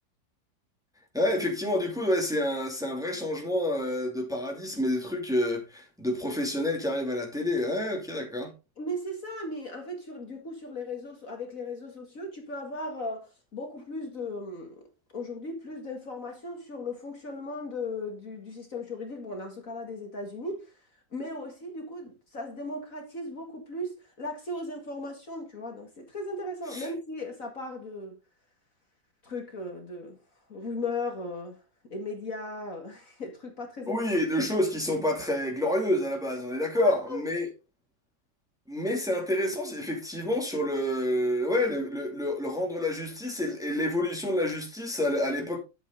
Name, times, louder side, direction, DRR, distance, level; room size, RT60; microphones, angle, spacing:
voice 1, 1.1-8.5 26.7-26.9 33.9-37.5 38.7-45.6, left 1 dB, ahead, 2.6 m, -28 dB
voice 2, 8.8-14.9 15.1-20.7 21.1-28.2 29.2-30.2 30.5-31.6 31.9-34.1 36.7-37.2, left 2 dB, 45° left, 2.4 m, -37 dB
10.5 x 8.2 x 3.9 m
omnidirectional pair, 2.0 m